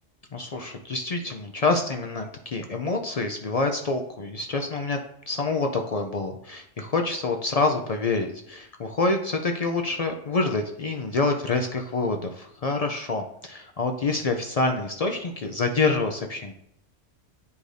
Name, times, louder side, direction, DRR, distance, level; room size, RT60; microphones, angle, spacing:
voice 1, 0.3-5.0 5.3-16.5, left 3 dB, 65° left, 4 dB, 0.3 m, -27 dB
9.5 x 4.9 x 2.6 m, 0.73 s
omnidirectional pair, 1.3 m